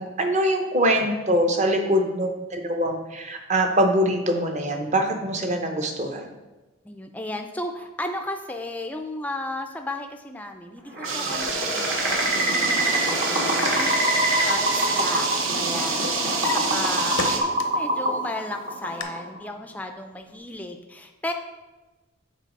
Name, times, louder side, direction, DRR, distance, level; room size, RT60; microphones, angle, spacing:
voice 1, 0.0-6.3, equal, 35° right, 4 dB, 0.7 m, -23 dB
voice 2, 1.8-2.3 6.8-15.3 15.5-21.3, left 1 dB, 10° left, 4 dB, 0.4 m, -35 dB
sound 1, 10.9-19.4, right 1 dB, 55° right, 1.3 m, -25 dB
sound 2, 11.0-17.4, right 4 dB, 80° right, 0.9 m, -28 dB
Drawer open or close, 12.8-15.3 15.6-17.9 18.3-19.0, left 4 dB, 80° left, 0.7 m, -35 dB
7.5 x 3.9 x 5.3 m, 1.1 s
head